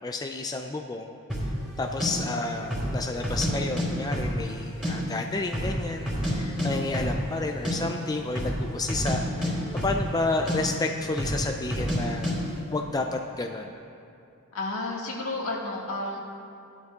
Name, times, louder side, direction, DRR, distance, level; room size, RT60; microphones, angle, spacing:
voice 1, 0.0-1.2 1.8-12.3 12.7-13.8, left 2 dB, 15° left, 4 dB, 0.3 m, -31 dB
sound 1, 1.3-1.5 2.0-2.1 2.6-2.9 3.2-3.9 4.1-4.9 5.2-5.3 5.5-6.3 6.6-6.7 6.9-7.2 7.5-7.8 8.3-8.6 8.9-10.2 10.5-10.6 11.2-11.4 11.7-12.0 12.2-12.4, equal, 5° right, 2.8 m, -28 dB
voice 2, 6.3-6.7 14.5-16.2, left 2 dB, 75° left, -2 dB, 1.8 m, -32 dB
16.0 x 12.0 x 2.4 m, 2.6 s
head